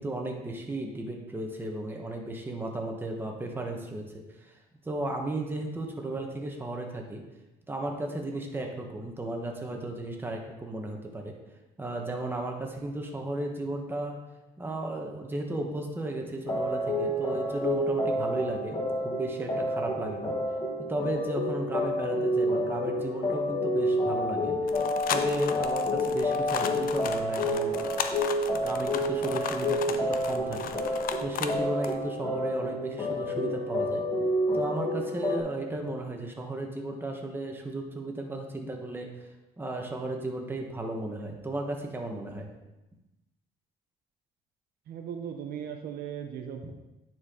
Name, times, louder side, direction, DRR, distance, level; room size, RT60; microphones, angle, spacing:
voice 1, 0.0-4.6 4.8-7.2 7.7-11.3 11.8-14.2 14.6-18.8 19.0-20.3 20.9-24.7 25.1-27.7 28.6-34.0 34.5-39.3 39.6-42.5, right 1 dB, 10° right, 1 dB, 1.2 m, -34 dB
sound 1, 16.4-35.4, left 1 dB, 25° left, 1.8 m, -29 dB
sound 2, 24.7-31.6 31.8-31.9, left 8 dB, 60° left, 0.6 m, -36 dB
voice 2, 44.9-46.7, right 8 dB, 65° right, 5 dB, 0.8 m, -38 dB
9.5 x 4.4 x 3.8 m, 0.99 s
cardioid pair, 110°, 17 cm